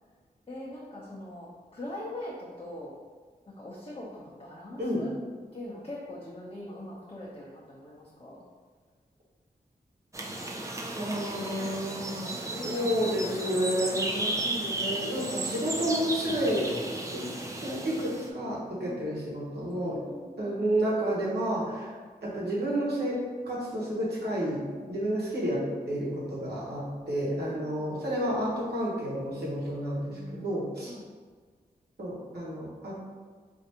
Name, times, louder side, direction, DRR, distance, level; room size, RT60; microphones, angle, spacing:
voice 1, 0.5-2.9 3.4-5.1 5.5-8.4 12.0-14.4 18.8-19.1 19.7-20.7 26.9-27.8 30.1-30.6 30.9-31.0, left 1 dB, 35° left, -7 dB, 0.7 m, -43 dB
sound 1, 10.1-18.3, right 2 dB, 20° right, 0.4 m, -34 dB
voice 2, 11.0-16.7 17.1-17.2 17.6-20.0 20.4-21.9 22.2-24.6 24.9-30.9 32.0-32.9, equal, 80° right, -6 dB, 1.0 m, -30 dB
3.2 x 2.6 x 2.8 m, 1.5 s
cardioid pair, 50°, 17 cm